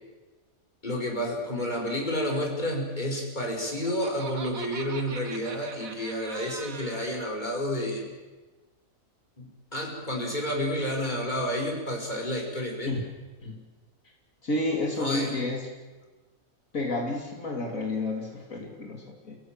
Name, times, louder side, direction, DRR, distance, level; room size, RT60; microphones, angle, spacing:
voice 1, 0.8-8.1 9.4-12.9 14.9-15.3, equal, 30° left, 0 dB, 5.6 m, -30 dB
Laughter, 3.6-7.2, right 4 dB, 80° right, 2.3 m, -42 dB
voice 2, 14.4-15.7 16.7-19.4, left 2 dB, 75° left, 0 dB, 3.5 m, -30 dB
30.0 x 17.5 x 9.2 m, 1.3 s
omnidirectional pair, 1.4 m